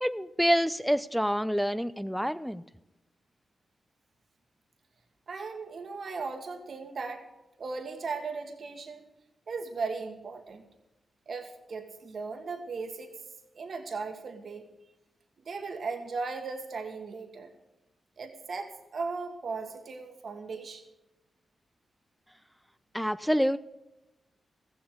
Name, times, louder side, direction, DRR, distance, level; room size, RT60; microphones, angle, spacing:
voice 1, 0.0-2.6 22.9-23.6, equal, ahead, 14 dB, 0.5 m, -27 dB
voice 2, 5.3-7.3 7.6-9.0 9.5-10.6 11.3-13.2 13.5-14.7 15.4-17.5 18.2-20.8, right 4 dB, 65° right, 5 dB, 1.5 m, -37 dB
14.5 x 7.8 x 7.9 m, 0.95 s
supercardioid pair, 45°, 0 cm